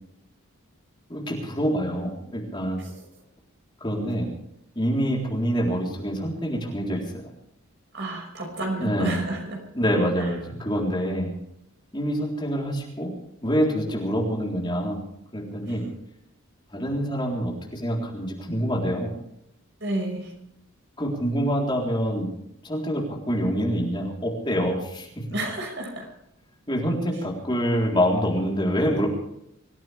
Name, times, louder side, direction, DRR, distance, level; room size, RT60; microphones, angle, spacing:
voice 1, 1.1-2.8 3.8-4.3 4.8-7.3 8.8-9.2 9.7-11.3 11.9-13.1 13.4-15.0 15.3-15.8 16.7-19.1 21.0-22.3 22.6-25.2 26.7-29.1, equal, 20° left, -2 dB, 3.9 m, -26 dB
voice 2, 7.9-9.6 10.2-10.3 15.6-15.7 19.8-20.3 25.3-26.1, right 2 dB, 55° right, 2 dB, 5.8 m, -30 dB
25.0 x 16.0 x 3.5 m, 0.78 s
head